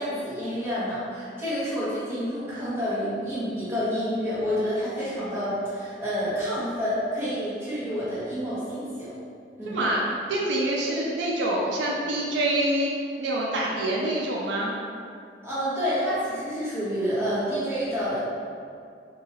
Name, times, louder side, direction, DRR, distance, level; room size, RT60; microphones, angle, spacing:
voice 1, 0.0-9.1 9.6-9.8 15.4-18.3, equal, 15° right, -12 dB, 1.0 m, -28 dB
voice 2, 9.7-10.0 10.3-12.9 13.2-14.8, right 1 dB, 80° right, -3 dB, 0.4 m, -26 dB
2.7 x 2.3 x 2.8 m, 2.3 s
head